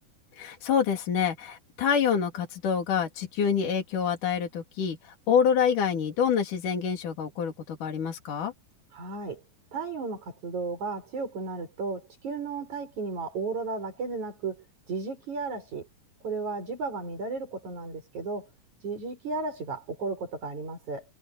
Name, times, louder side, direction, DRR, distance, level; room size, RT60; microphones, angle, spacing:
voice 1, 0.3-8.5, left 7 dB, 75° left, 4.4 m, -27 dB
voice 2, 8.9-9.4 9.7-15.9 16.2-18.5 18.8-21.1, right 4 dB, 60° right, 7.9 m, -34 dB
omnidirectional pair, 3.7 m